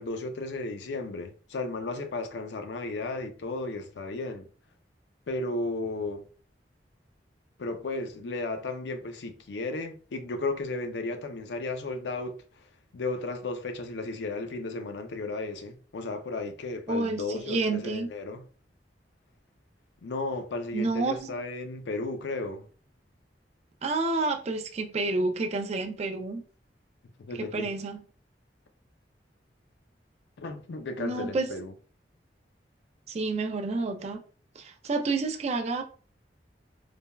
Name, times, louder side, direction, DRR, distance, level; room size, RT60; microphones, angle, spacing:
voice 1, 0.0-4.4 5.3-6.2 7.6-12.4 12.9-18.4 20.0-22.6 27.3-27.7 30.4-31.7, left 2 dB, 75° left, 0.5 m, -34 dB
voice 2, 16.9-18.1 20.7-21.3 23.8-26.4 27.4-28.0 31.0-31.5 33.1-34.2 34.6-35.8, right 3 dB, 40° right, 0.3 m, -29 dB
3.2 x 2.1 x 2.2 m
head